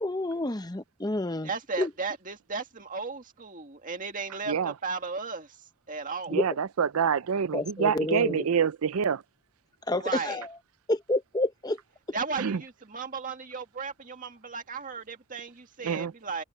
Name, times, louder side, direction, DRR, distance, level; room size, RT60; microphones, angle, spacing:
voice 1, 0.0-1.5 1.8-1.9 6.3-6.5 7.5-8.5 9.9-10.6 10.9-11.8, left 1 dB, 15° left, 0.8 m, -29 dB
voice 2, 1.4-5.5 5.9-6.4 10.0-10.4 12.1-16.4, right 4 dB, 35° right, 2.0 m, -35 dB
voice 3, 6.3-9.2 12.4-12.6 15.8-16.1, right 7 dB, 70° right, 0.5 m, -26 dB
head